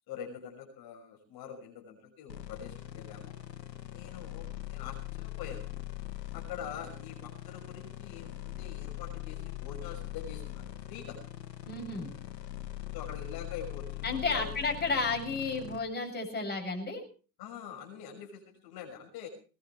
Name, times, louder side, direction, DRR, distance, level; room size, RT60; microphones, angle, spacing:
voice 1, 0.1-3.3 3.9-5.7 6.3-11.2 12.9-14.5 17.4-19.3, left 7 dB, 50° left, 2 dB, 6.1 m, -45 dB
sound 1, 2.3-15.8, left 14 dB, 85° left, 1.6 m, -42 dB
voice 2, 11.6-12.1 14.0-17.0, left 4 dB, 20° left, 1 dB, 7.8 m, -32 dB
21.0 x 20.5 x 3.3 m, 0.37 s
hypercardioid pair, 80°, 49 cm